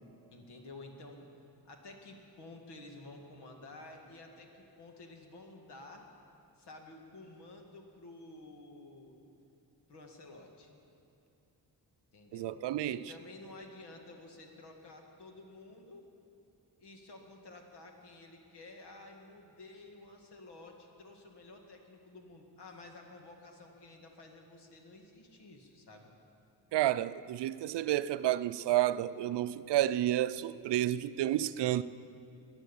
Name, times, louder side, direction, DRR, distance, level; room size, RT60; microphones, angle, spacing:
voice 1, 0.3-1.3 1.6-6.1 6.6-9.2 9.9-10.7 12.1-16.1 16.8-26.1, left 2 dB, 75° left, 2.2 m, -52 dB
voice 2, 12.3-13.0 26.7-31.8, right 13 dB, 80° right, 0.6 m, -30 dB
18.5 x 10.5 x 7.1 m
wide cardioid pair, 120°, 41 cm